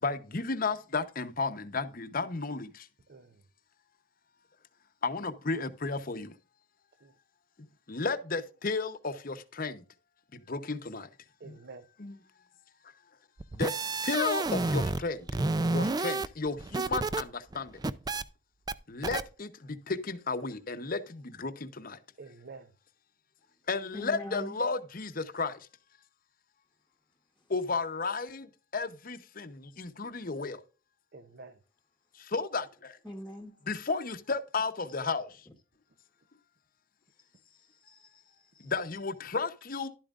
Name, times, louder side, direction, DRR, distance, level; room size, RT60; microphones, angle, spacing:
voice 1, 0.0-2.9 5.0-6.3 7.9-9.8 10.3-11.1 11.5-11.6 12.0-12.1 13.5-15.3 15.7-17.8 18.9-22.0 23.7-25.6 27.5-30.6 32.1-33.0 33.7-35.5 38.6-39.9, left 4 dB, 45° left, 0.9 m, -33 dB
voice 2, 3.1-3.4 7.0-7.1 11.4-11.8 22.2-22.8 31.1-31.6, right 3 dB, 55° right, 0.7 m, -48 dB
sound 1, 13.4-15.0 15.3-17.2 17.5-18.2 18.7-18.8 19.0-19.2, right 3 dB, 20° right, 0.4 m, -30 dB
voice 3, 23.9-24.6 27.4-27.5 33.0-33.5 35.5-35.6 37.2-38.7, left 1 dB, 5° left, 1.2 m, -45 dB
11.5 x 8.8 x 2.5 m
head